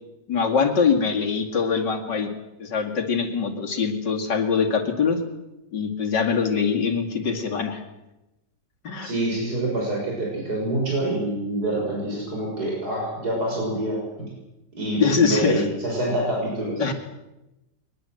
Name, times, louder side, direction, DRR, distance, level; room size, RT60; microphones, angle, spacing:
voice 1, 0.3-2.3 2.6-5.2 5.7-7.8 8.8-9.1 15.0-15.6 16.8-16.9, left 5 dB, 80° left, 3 dB, 3.0 m, -23 dB
voice 2, 9.0-14.3 14.7-16.9, right 1 dB, 60° right, -2 dB, 6.8 m, -26 dB
22.5 x 20.5 x 7.9 m, 0.97 s
omnidirectional pair, 1.9 m